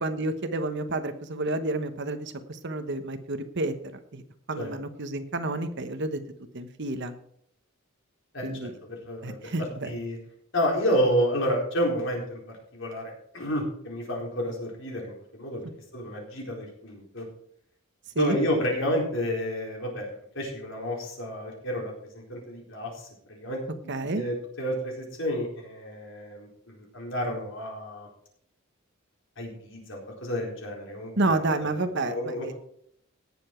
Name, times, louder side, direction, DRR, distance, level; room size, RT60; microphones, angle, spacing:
voice 1, 0.0-3.7 4.1-4.2 4.5-6.2 6.5-7.1 8.4-8.7 9.2-9.9 18.1-18.4 23.9-24.2 31.2-32.5, right 2 dB, 55° right, 9 dB, 1.1 m, -29 dB
voice 2, 8.3-8.7 9.0-9.4 9.8-10.2 10.5-12.4 12.7-15.7 15.9-17.3 18.2-23.6 24.1-26.5 26.7-28.1 29.4-32.5, equal, 60° left, 0 dB, 4.3 m, -30 dB
17.5 x 7.0 x 4.5 m, 0.68 s
head